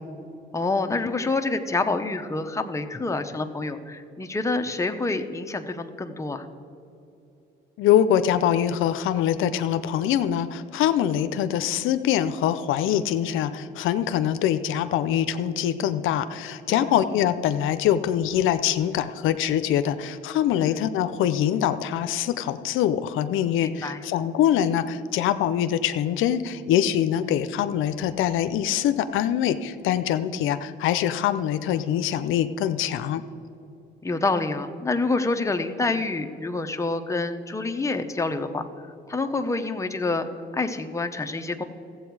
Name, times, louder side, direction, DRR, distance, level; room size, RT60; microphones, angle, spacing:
voice 1, 0.5-6.5 16.7-17.0 20.6-20.8 23.6-24.0 34.0-38.6 39.1-40.3 40.5-41.6, left 3 dB, 15° left, 6 dB, 0.8 m, -27 dB
voice 2, 7.8-33.2, left 10 dB, 85° left, 11 dB, 0.5 m, -24 dB
14.5 x 7.9 x 4.7 m, 2.7 s
cardioid pair, 90°, 20 cm